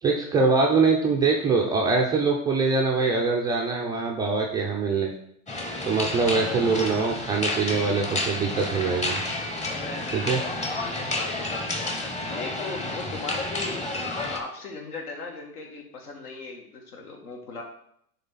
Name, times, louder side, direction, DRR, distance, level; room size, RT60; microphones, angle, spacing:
voice 1, 0.0-5.1 5.8-9.2 10.1-10.4, right 4 dB, 10° right, -2 dB, 0.3 m, -23 dB
sound 1, 5.5-14.4, left 2 dB, 15° left, 0.8 m, -30 dB
voice 2, 9.7-17.6, left 3 dB, 75° left, 1 dB, 2.0 m, -38 dB
9.9 x 3.3 x 4.0 m, 0.71 s
hypercardioid pair, 105°, 45 cm